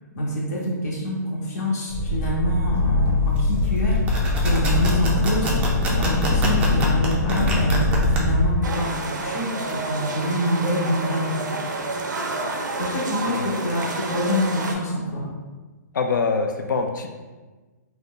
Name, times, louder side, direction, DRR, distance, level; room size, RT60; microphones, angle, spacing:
voice 1, 0.1-4.0 4.4-5.5 6.0-11.3 12.8-15.3, equal, 60° left, -4 dB, 0.8 m, -26 dB
sound 1, 1.9-8.5, left 2 dB, 15° left, 0.9 m, -22 dB
Cutting Credit Card, 3.9-8.2, equal, 15° right, 0.3 m, -26 dB
sound 2, 8.6-14.7, right 3 dB, 85° right, 0.5 m, -29 dB
voice 2, 15.9-17.1, left 4 dB, 85° left, 4 dB, 0.4 m, -24 dB
2.6 x 2.1 x 3.6 m, 1.3 s
hypercardioid pair, 155°, 10 cm